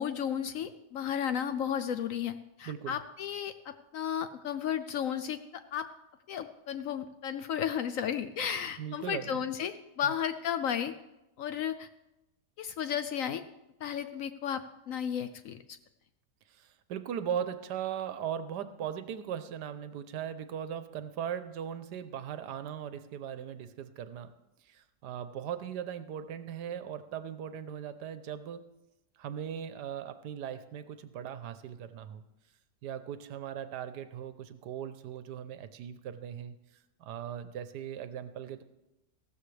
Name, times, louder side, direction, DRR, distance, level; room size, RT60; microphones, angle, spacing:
voice 1, 0.0-5.9 6.3-10.9 11.4-11.9 12.6-13.4 13.8-14.6 14.9-15.6, left 8 dB, 70° left, 10 dB, 0.8 m, -33 dB
voice 2, 2.7-3.0 8.8-9.4 10.0-10.1 16.5-24.3 24.7-28.7 29.2-32.2 32.8-36.5 37.0-38.6, right 9 dB, 80° right, 11 dB, 1.3 m, -39 dB
15.0 x 13.0 x 3.3 m, 0.94 s
omnidirectional pair, 1.8 m